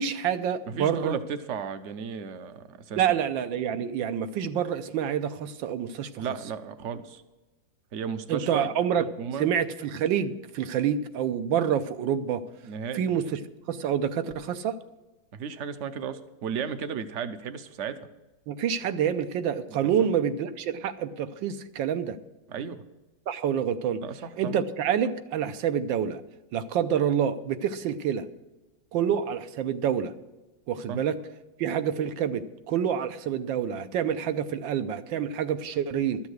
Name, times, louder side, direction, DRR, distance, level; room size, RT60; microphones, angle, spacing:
voice 1, 0.0-1.2 3.0-6.2 8.3-9.1 9.4-12.4 12.9-13.4 13.7-14.8 18.5-22.2 23.3-24.0 24.4-26.2 26.5-28.3 28.9-30.1 30.7-31.2 31.6-36.2, right 8 dB, 85° right, 10 dB, 1.5 m, -27 dB
voice 2, 0.7-3.0 6.2-7.2 7.9-8.7 9.2-9.5 12.6-13.1 15.3-18.1 19.7-20.1 22.5-22.8 24.0-24.6 30.9-31.0, right 6 dB, 60° right, 10 dB, 0.8 m, -34 dB
13.0 x 7.1 x 6.5 m, 1.1 s
omnidirectional pair, 2.0 m